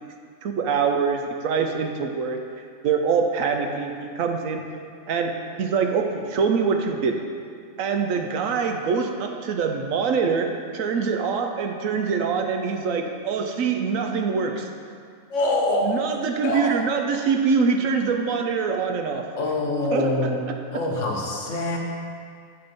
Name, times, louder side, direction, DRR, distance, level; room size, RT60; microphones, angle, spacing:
voice 1, 0.4-2.4 2.8-4.6 5.1-7.2 7.8-14.7 15.8-19.3 19.9-20.3, right 5 dB, 75° right, 4 dB, 1.0 m, -24 dB
voice 2, 15.3-15.9 16.4-16.8 19.4-20.4 20.7-21.8, left 2 dB, 60° left, -1 dB, 1.2 m, -24 dB
7.9 x 3.6 x 5.1 m, 2.2 s
omnidirectional pair, 1.5 m